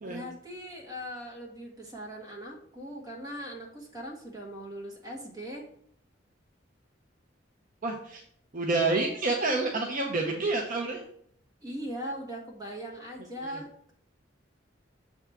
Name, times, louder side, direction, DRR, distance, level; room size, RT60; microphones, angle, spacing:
voice 1, 0.0-5.7 11.6-13.9, equal, 20° right, -1 dB, 1.6 m, -40 dB
voice 2, 7.8-8.2 8.5-11.0 13.4-13.6, right 3 dB, 45° right, 1 dB, 0.7 m, -28 dB
7.1 x 3.5 x 5.6 m, 0.66 s
head